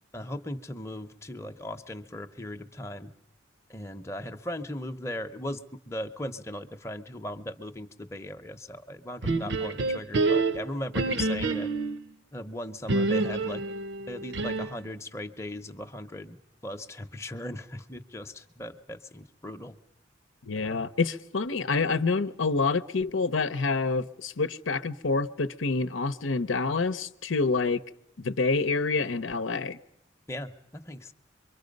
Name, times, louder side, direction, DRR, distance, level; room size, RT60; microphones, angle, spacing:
voice 1, 0.1-3.1 3.7-11.7 12.3-13.6 14.1-19.8 20.6-20.8 30.3-31.1, left 1 dB, 15° left, 0.7 m, -38 dB
sound 1, 9.2-12.0 12.9-14.9, right 3 dB, 65° right, 0.8 m, -28 dB
voice 2, 20.4-27.8 28.2-29.8, left 4 dB, 85° left, 0.8 m, -27 dB
26.0 x 23.0 x 5.3 m
head